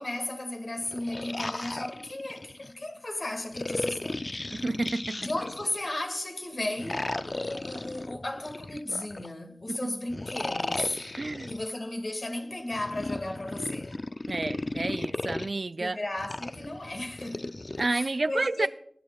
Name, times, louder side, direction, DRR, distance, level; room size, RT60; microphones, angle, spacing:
voice 1, 0.0-4.4 5.2-11.0 11.5-14.0 15.8-18.7, left 1 dB, 70° left, 1.8 m, -35 dB
sound 1, 0.8-2.7 3.5-5.9 6.8-9.3 10.1-11.7 12.7-15.5 16.2-17.9, left 2 dB, 50° left, 0.4 m, -35 dB
voice 2, 4.5-5.3 9.7-9.9 11.2-11.6 14.3-16.0 17.8-18.7, right 2 dB, 70° right, 0.3 m, -30 dB
20.0 x 12.0 x 2.3 m
wide cardioid pair, 60°, 0 cm